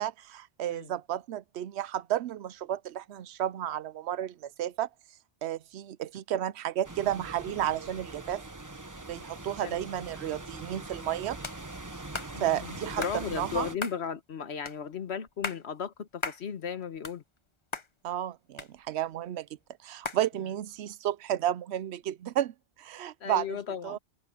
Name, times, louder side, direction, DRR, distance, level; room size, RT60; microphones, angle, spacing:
voice 1, 0.0-4.9 5.4-8.4 9.1-11.4 12.4-13.7 18.0-19.5 19.8-23.6 23.8-24.0, right 11 dB, 80° right, 0.9 m, -32 dB
sound 1, 6.8-13.8, right 2 dB, 20° right, 1.1 m, -42 dB
sound 2, 11.4-11.6 12.1-12.3 13.0-13.2 13.8-14.0 14.7-14.8 15.3-15.6 16.2-16.4 16.8-17.5 17.7-17.9 18.6-19.1 20.0-20.2, left 3 dB, 30° left, 1.0 m, -36 dB
voice 2, 12.3-17.2 23.2-24.0, left 7 dB, 80° left, 1.4 m, -36 dB
omnidirectional pair, 1.1 m